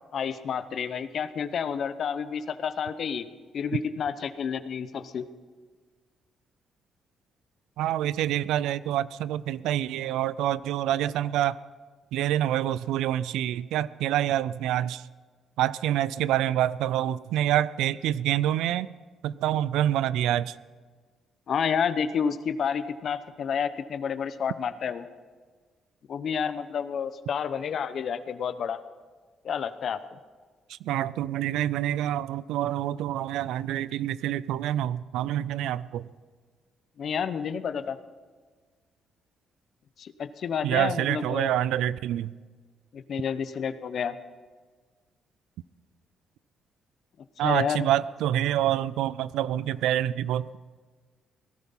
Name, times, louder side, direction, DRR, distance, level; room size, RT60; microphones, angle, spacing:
voice 1, 0.1-3.3 3.5-5.2 21.5-25.1 26.1-28.8 29.4-30.0 37.0-38.0 40.0-41.5 42.9-44.2 47.4-47.9, left 7 dB, 60° left, 13 dB, 0.8 m, -30 dB
voice 2, 7.8-11.6 12.1-15.0 15.6-18.9 19.2-20.6 30.7-36.1 40.6-42.3 47.4-50.6, right 12 dB, 90° right, 19 dB, 0.4 m, -27 dB
18.0 x 12.0 x 5.6 m, 1.5 s
cardioid pair, 90°, 0 cm